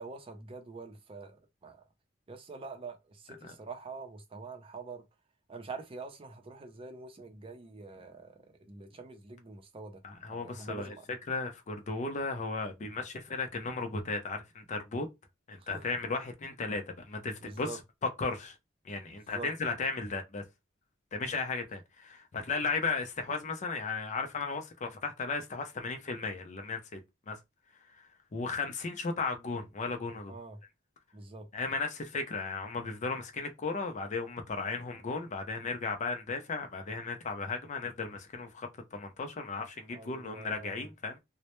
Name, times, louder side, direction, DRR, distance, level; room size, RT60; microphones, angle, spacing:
voice 1, 0.0-1.8 2.3-5.0 5.5-10.0 10.3-11.1 15.6-15.9 17.4-17.8 19.3-19.5 30.3-30.6 31.1-31.5 39.9-40.9, right 4 dB, 30° right, 0.5 m, -45 dB
voice 2, 10.0-11.0 11.3-15.1 15.5-17.8 18.2-18.6 18.9-20.4 21.1-27.0 27.3-27.4 28.3-30.3 31.5-41.2, left 4 dB, 40° left, 0.5 m, -35 dB
2.1 x 2.0 x 2.9 m
head